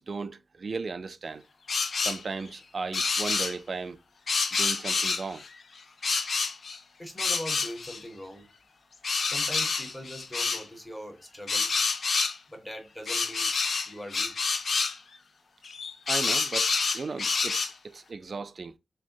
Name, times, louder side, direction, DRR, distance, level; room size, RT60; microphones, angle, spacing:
voice 1, 0.0-1.4 2.0-4.0 4.5-5.5 16.1-16.7 16.9-18.8, right 4 dB, 40° right, 0.4 m, -36 dB
sound 1, 1.7-2.2 2.9-3.6 4.3-5.5 6.0-6.8 7.2-8.0 9.0-10.6 11.5-12.4 13.1-15.0 15.6-17.7, left 4 dB, 50° left, 0.5 m, -28 dB
voice 2, 7.0-8.4 9.3-11.7 12.5-13.5 13.9-14.3, equal, 5° left, 0.9 m, -41 dB
6.0 x 2.2 x 2.7 m
wide cardioid pair, 165°, 0 cm